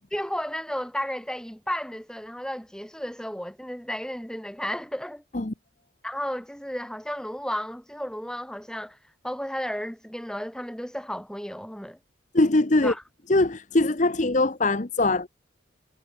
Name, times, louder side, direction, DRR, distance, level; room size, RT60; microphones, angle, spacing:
voice 1, 0.1-5.2 6.0-9.0 9.2-12.0 12.8-13.0, equal, 5° left, 6.3 m, -33 dB
voice 2, 12.3-12.9 13.3-15.3, left 2 dB, 40° left, 1.0 m, -22 dB
head